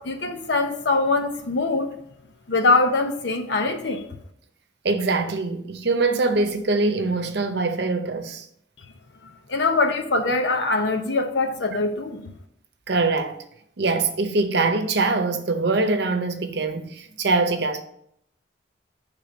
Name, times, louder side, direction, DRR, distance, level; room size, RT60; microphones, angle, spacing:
voice 1, 0.0-1.9 2.5-4.0 9.5-12.3, left 3 dB, 70° left, 0.7 m, -23 dB
voice 2, 4.8-8.5 12.9-13.4 13.8-17.8, right 3 dB, 60° right, 0.8 m, -23 dB
6.8 x 3.7 x 6.3 m
head